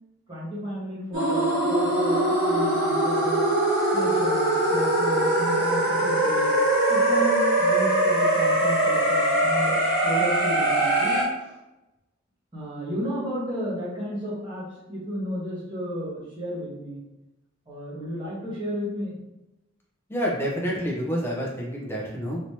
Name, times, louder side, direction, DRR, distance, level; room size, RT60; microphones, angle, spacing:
voice 1, 0.3-3.4 3.9-6.5 6.9-9.8 10.0-11.5 12.5-17.0 17.7-19.2, equal, 25° right, -8 dB, 1.5 m, -33 dB
sound 1, 1.1-11.2, right 1 dB, 75° right, 1.4 m, -22 dB
voice 2, 20.1-22.4, equal, 10° left, -3 dB, 0.7 m, -28 dB
3.3 x 2.9 x 2.8 m, 0.94 s
head